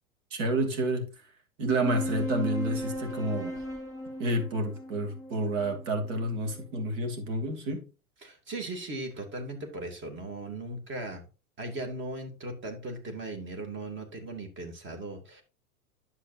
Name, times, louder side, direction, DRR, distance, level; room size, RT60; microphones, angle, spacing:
voice 1, 0.3-1.1 1.6-3.6 4.2-7.8, right 1 dB, 55° right, 2.9 m, -29 dB
sound 1, 1.8-6.7, equal, 5° left, 3.8 m, -37 dB
voice 2, 8.2-11.2 11.6-15.4, right 2 dB, 25° right, 2.6 m, -38 dB
10.0 x 7.4 x 2.7 m
hypercardioid pair, 95°, 44 cm